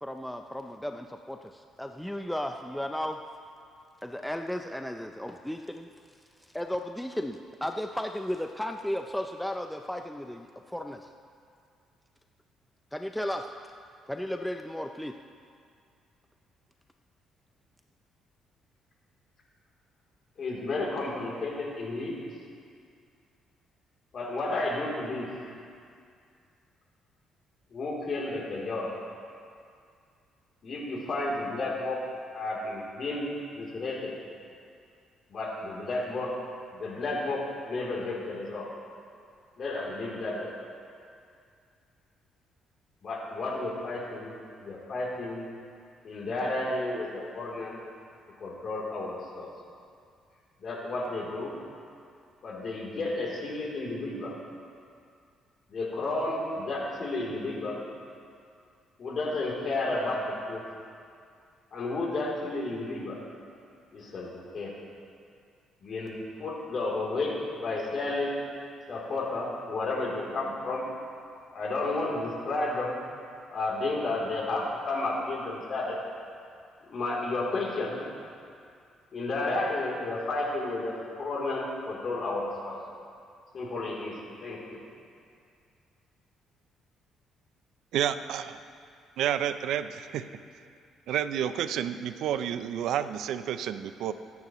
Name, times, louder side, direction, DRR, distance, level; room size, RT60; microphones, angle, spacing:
voice 1, 0.0-3.2 4.0-5.9 6.5-11.1 12.9-13.5 14.1-15.1, left 1 dB, 5° left, 4 dB, 0.5 m, -34 dB
voice 2, 20.4-22.2 24.1-25.3 27.7-28.9 30.6-32.0 32.3-34.1 35.3-36.4 36.7-38.7 39.6-40.5 43.0-44.3 44.6-45.4 46.0-47.8 48.4-49.5 50.6-51.5 52.4-54.4 55.7-57.8 59.0-60.6 61.7-63.2 63.9-64.7 65.8-68.4 68.9-70.8 71.5-72.9 73.5-76.0 76.9-78.0 79.1-82.8 83.5-84.8, left 2 dB, 50° left, -3 dB, 3.2 m, -32 dB
voice 3, 87.9-88.6 89.2-90.3 91.1-94.1, right 10 dB, 80° right, 11 dB, 0.5 m, -30 dB
24.0 x 9.5 x 3.1 m, 2.3 s
cardioid pair, 100°, 0 cm